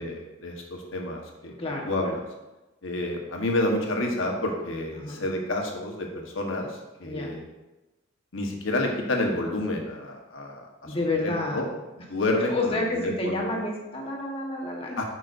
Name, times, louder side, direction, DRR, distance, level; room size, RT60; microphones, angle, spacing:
voice 1, 0.0-1.6 1.8-2.2 2.8-7.4 8.3-11.7 12.1-13.6 15.0-15.1, left 1 dB, 85° left, 1 dB, 1.2 m, -29 dB
voice 2, 1.6-2.1 5.0-5.2 7.0-7.4 10.9-11.7 12.5-15.0, left 2 dB, 30° left, -1 dB, 1.2 m, -30 dB
9.2 x 5.3 x 2.6 m, 1.0 s
head